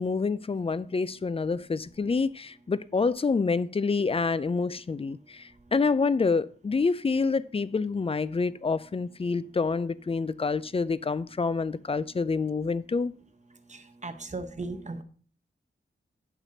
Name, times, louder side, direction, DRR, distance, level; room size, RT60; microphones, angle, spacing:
voice 1, 0.0-13.1, left 4 dB, 30° left, 0.4 m, -27 dB
voice 2, 13.7-15.0, right 3 dB, 35° right, 0.9 m, -37 dB
8.9 x 6.1 x 2.8 m
cardioid pair, 55°, 20 cm